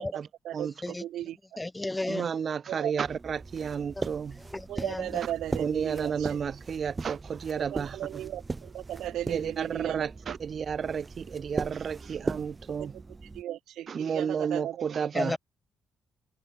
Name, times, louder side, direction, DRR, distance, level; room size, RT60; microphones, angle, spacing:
voice 1, 0.4-1.6 2.7-2.9 4.7-6.4 7.7-10.3 12.1-12.3 12.8-12.9 13.3-14.8, right 12 dB, 80° right, 1.4 m, -36 dB
voice 2, 1.6-2.3 4.0-4.1 4.5-5.1 15.1-15.4, left 2 dB, 15° left, 1.2 m, -32 dB
voice 3, 2.1-4.4 5.6-8.3 9.3-13.0 13.9-15.4, right 7 dB, 50° right, 2.2 m, -32 dB
sound 1, 3.0-13.4, right 3 dB, 25° right, 7.3 m, -39 dB
cardioid pair, 90°, 0 cm